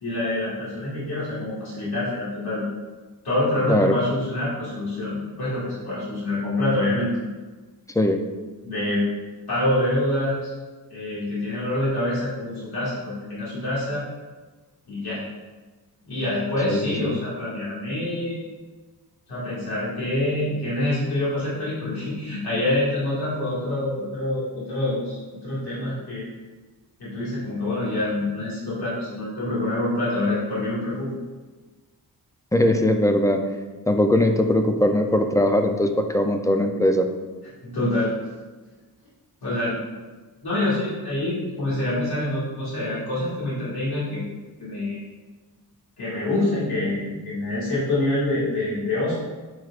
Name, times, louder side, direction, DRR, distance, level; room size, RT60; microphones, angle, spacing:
voice 1, 0.0-2.7 3.2-7.1 8.6-9.0 9.5-10.5 10.9-14.0 14.9-15.2 16.1-18.4 19.3-26.3 27.0-31.1 37.6-38.1 39.4-39.8 40.4-44.2 44.6-45.0 46.0-49.2, left 1 dB, 85° left, -8 dB, 2.0 m, -26 dB
voice 2, 3.7-4.0 7.9-8.2 16.7-16.8 32.5-33.4 33.9-37.1, left 1 dB, 10° left, 5 dB, 0.4 m, -20 dB
9.2 x 4.7 x 2.5 m, 1.3 s
wide cardioid pair, 145°, 38 cm